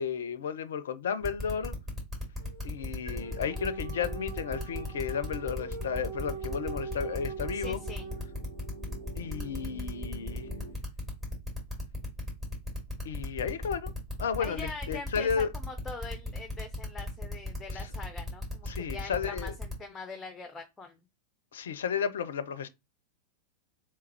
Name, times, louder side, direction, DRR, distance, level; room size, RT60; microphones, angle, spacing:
voice 1, 0.0-1.8 2.6-7.8 9.2-10.5 13.1-13.9 14.2-15.5 18.7-19.5 21.5-22.7, left 7 dB, 60° left, 0.4 m, -33 dB
sound 1, 1.2-19.7, left 2 dB, 20° right, 2.2 m, -36 dB
sound 2, 2.4-8.7, right 5 dB, 60° right, 0.9 m, -42 dB
sound 3, 3.1-10.7, right 1 dB, 85° right, 1.3 m, -49 dB
voice 2, 7.5-8.1 14.4-21.0, left 3 dB, 15° left, 0.5 m, -43 dB
3.4 x 3.1 x 3.4 m
figure-of-eight pair, 90°, 0 cm